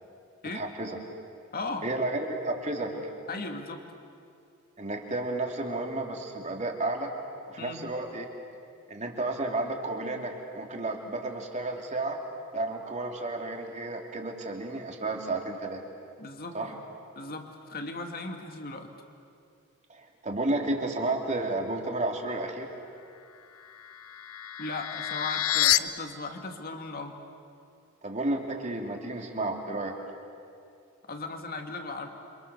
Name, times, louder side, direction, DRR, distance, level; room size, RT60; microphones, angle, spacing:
voice 1, 0.5-1.0 1.8-3.1 4.8-7.1 7.5-8.3 8.9-12.2 12.5-15.8 16.5-16.7 19.9-22.7 28.0-29.9, right 2 dB, 35° right, 1 dB, 3.1 m, -32 dB
voice 2, 1.5-1.9 3.3-3.8 7.6-7.8 16.2-16.8 17.2-18.9 24.6-27.2 31.1-32.1, left 3 dB, 45° left, 4 dB, 2.4 m, -37 dB
sound 1, 23.5-25.8, left 13 dB, 80° left, 0.7 m, -28 dB
29.5 x 26.0 x 7.1 m, 2.4 s
head